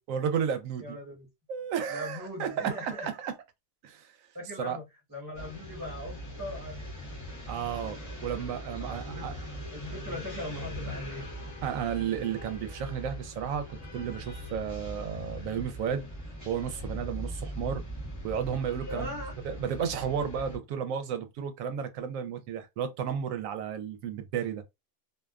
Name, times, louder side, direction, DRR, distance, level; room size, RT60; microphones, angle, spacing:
voice 1, 0.1-1.0 1.5-3.3 3.8-4.1 4.6-4.8 7.5-9.5 11.6-16.0 16.5-17.8 18.2-19.1 19.4-24.6, right 8 dB, 85° right, 1.0 m, -33 dB
voice 2, 0.8-1.3 1.9-3.1 4.3-6.9 8.8-9.3 9.7-11.3 18.9-19.4, left 1 dB, 15° right, 1.0 m, -40 dB
sound 1, 5.3-20.6, equal, 15° left, 0.8 m, -40 dB
2.5 x 2.3 x 2.2 m
omnidirectional pair, 1.4 m